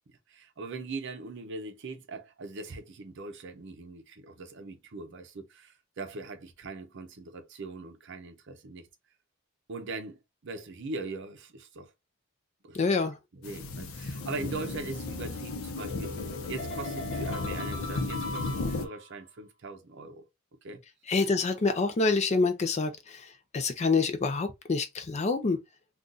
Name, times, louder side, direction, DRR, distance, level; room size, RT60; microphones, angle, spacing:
voice 1, 0.3-8.9 9.7-10.2 10.4-11.9 12.6-12.8 13.3-20.3 20.6-20.8, right 3 dB, 55° right, 0.6 m, -41 dB
voice 2, 12.7-13.2 21.1-23.3 23.5-25.6, left 4 dB, 30° left, 0.4 m, -27 dB
sound 1, 13.4-18.9, left 3 dB, 80° left, 0.6 m, -35 dB
sound 2, 14.2-19.1, left 2 dB, 60° left, 0.9 m, -40 dB
2.6 x 2.4 x 3.7 m
head